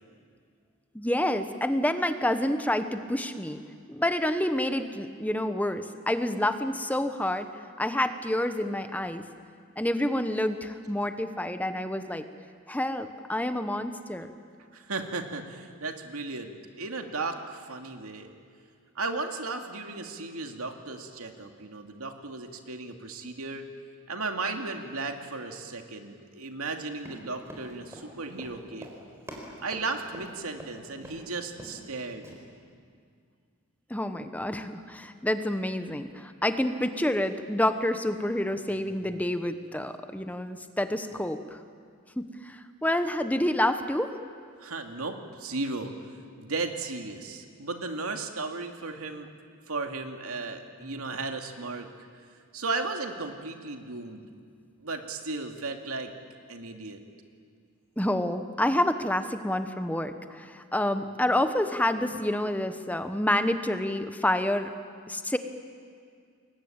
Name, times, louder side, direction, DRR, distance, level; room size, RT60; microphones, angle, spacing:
voice 1, 0.9-3.6 3.9-7.5 7.8-9.3 9.8-12.2 12.7-14.3 33.9-41.6 42.2-44.2 58.0-64.7 65.1-65.4, left 1 dB, 5° left, 9 dB, 1.0 m, -28 dB
voice 2, 14.7-18.3 19.0-23.6 24.1-28.9 29.6-32.3 44.6-45.9 46.4-49.3 49.7-51.9 52.5-54.3 54.8-56.1 56.5-57.0, right 3 dB, 90° right, 4 dB, 2.5 m, -35 dB
Run, 26.9-30.7 31.0-31.2 31.5-31.9 32.2-32.3, right 1 dB, 10° right, 4.5 m, -45 dB
29.5 x 22.0 x 8.9 m, 2.2 s
head